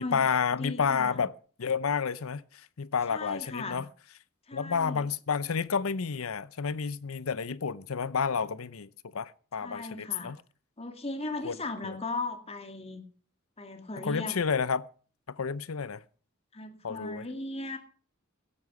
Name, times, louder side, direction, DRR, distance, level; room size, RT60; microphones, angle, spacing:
voice 1, 0.0-1.3 1.6-3.9 4.5-10.4 11.4-11.6 11.8-11.9 14.0-14.9 15.3-16.0 16.8-17.2, left 6 dB, 85° left, 0.7 m, -30 dB
voice 2, 0.5-1.2 3.1-3.8 4.5-5.0 9.6-10.3 10.8-13.0 13.6-14.4 16.5-17.8, left 2 dB, 30° left, 2.0 m, -37 dB
16.0 x 8.8 x 6.0 m
head